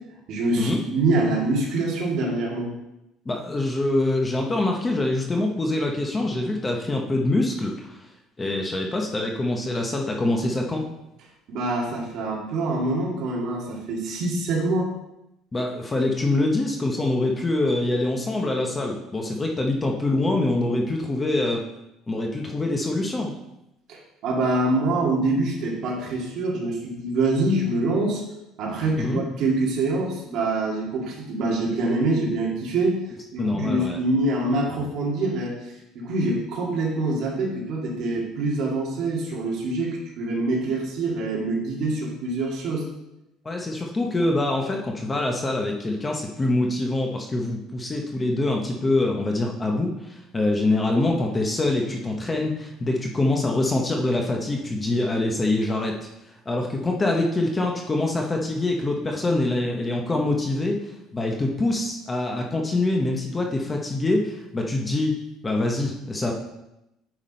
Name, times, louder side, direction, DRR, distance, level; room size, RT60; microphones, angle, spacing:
voice 1, 0.3-2.7 11.5-14.9 23.9-28.2 28.6-33.0 33.3-35.6 35.9-42.9, right 2 dB, 50° right, -2 dB, 2.3 m, -25 dB
voice 2, 3.3-8.0 8.4-10.9 15.5-21.6 22.1-23.3 29.0-29.2 33.4-34.0 43.4-56.1 56.5-65.2 65.4-66.3, left 2 dB, 15° left, 1 dB, 0.8 m, -25 dB
9.1 x 5.9 x 4.3 m, 0.88 s
cardioid pair, 175°, 0 cm